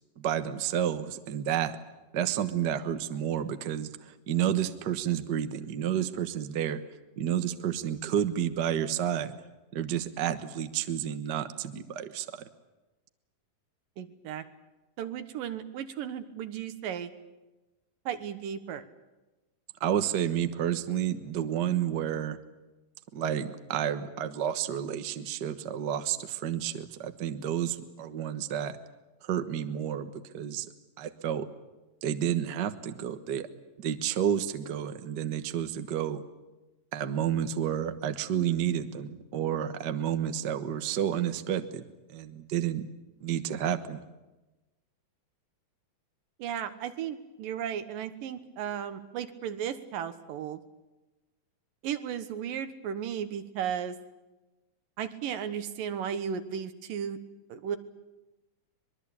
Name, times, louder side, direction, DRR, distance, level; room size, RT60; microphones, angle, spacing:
voice 1, 0.2-1.8 2.1-6.8 7.2-9.3 9.7-12.4 19.8-22.4 23.1-28.8 29.2-30.7 31.0-31.5 32.0-33.5 33.8-36.2 36.9-42.9 43.2-44.0, right 10 dB, 65° right, 9 dB, 1.0 m, -30 dB
voice 2, 14.0-14.4 15.0-17.1 18.1-18.9 46.4-50.6 51.8-54.0 55.0-57.2 57.5-57.8, right 8 dB, 80° right, 10 dB, 3.0 m, -35 dB
24.5 x 22.0 x 8.6 m, 1.1 s
omnidirectional pair, 3.9 m